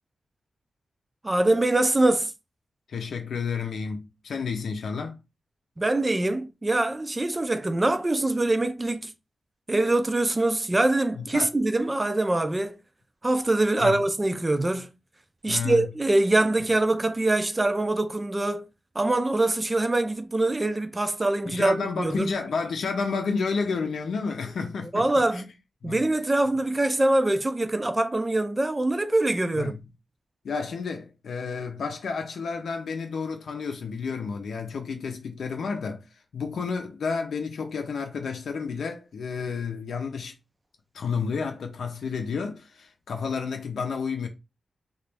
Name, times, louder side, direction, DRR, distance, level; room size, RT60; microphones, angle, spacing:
voice 1, 1.2-2.3 5.8-9.1 9.7-12.8 13.2-14.9 15.4-18.7 19.0-22.3 24.9-25.5 25.8-29.7, right 2 dB, 20° right, 0.3 m, -24 dB
voice 2, 2.9-5.2 11.1-11.5 13.8-14.0 15.5-15.9 21.5-25.1 25.3-25.4 25.8-26.0 29.5-29.8 30.4-36.1 36.3-40.3 40.9-44.3, left 5 dB, 75° left, 0.6 m, -31 dB
3.0 x 2.4 x 3.3 m
wide cardioid pair, 160°, 0 cm